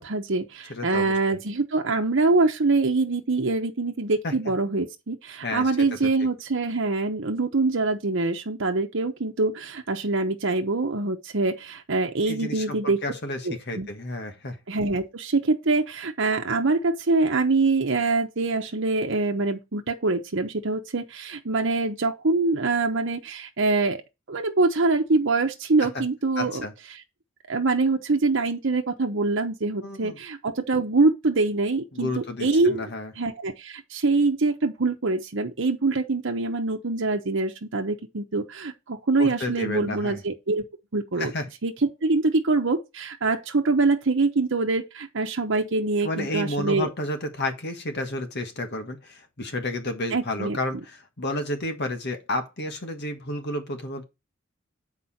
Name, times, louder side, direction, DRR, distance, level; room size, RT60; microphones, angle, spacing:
voice 1, 0.0-13.0 13.4-13.9 14.7-24.0 24.3-26.6 27.5-32.8 33.2-40.6 40.9-41.3 41.6-41.7 42.0-46.9 50.1-50.6, right 3 dB, 65° right, 1.0 m, -24 dB
voice 2, 0.7-1.4 4.2-4.3 5.4-6.1 12.3-14.6 25.8-26.0 26.4-26.7 29.8-30.2 31.9-33.1 39.2-40.2 41.2-41.5 46.0-54.0, left 1 dB, 55° left, 1.6 m, -31 dB
8.0 x 4.8 x 4.2 m
head